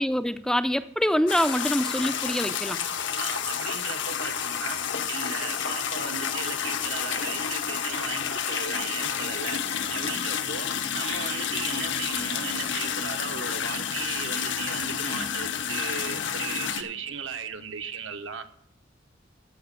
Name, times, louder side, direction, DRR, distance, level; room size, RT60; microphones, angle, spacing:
voice 1, 0.0-2.8, equal, 5° left, 0.4 m, -25 dB
sound 1, 1.3-16.8, left 8 dB, 70° left, 0.8 m, -30 dB
voice 2, 3.1-4.8 5.1-9.6 9.9-10.7 10.9-18.5, right 6 dB, 75° right, 1.0 m, -36 dB
14.5 x 5.1 x 6.7 m
head